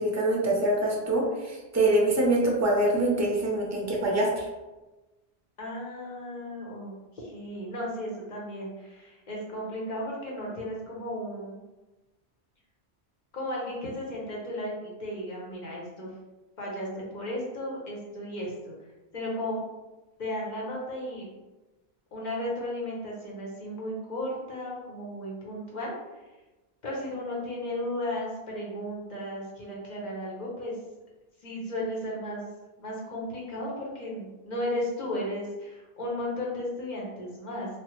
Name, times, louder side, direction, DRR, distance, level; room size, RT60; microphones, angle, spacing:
voice 1, 0.0-4.4, right 1 dB, 20° right, -3 dB, 0.5 m, -24 dB
voice 2, 5.6-11.6 13.3-16.1 16.6-18.7 19.1-19.6 20.2-21.3 22.1-25.9 26.8-30.8 31.4-32.4 32.8-37.7, left 1 dB, 45° left, -4 dB, 0.9 m, -34 dB
3.3 x 2.0 x 3.0 m, 1.1 s
omnidirectional pair, 1.1 m